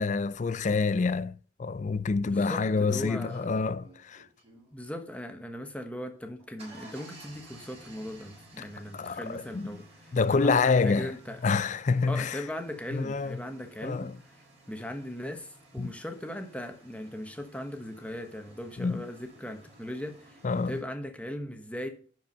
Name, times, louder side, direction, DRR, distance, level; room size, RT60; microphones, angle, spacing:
voice 1, 0.0-4.3 8.6-8.7 8.9-9.8 10.1-11.1 11.4-12.4 12.9-13.4 13.8-14.1 15.8-15.9 18.8-19.0 20.4-20.7, left 4 dB, 40° left, 0.4 m, -27 dB
voice 2, 2.2-3.5 4.7-9.8 10.3-11.4 12.1-14.1 14.7-21.9, left 1 dB, 5° left, 1.1 m, -39 dB
sound 1, 2.2-2.3 2.9-4.8 6.1-20.8, right 2 dB, 30° right, 5.4 m, -55 dB
11.0 x 4.7 x 5.4 m
head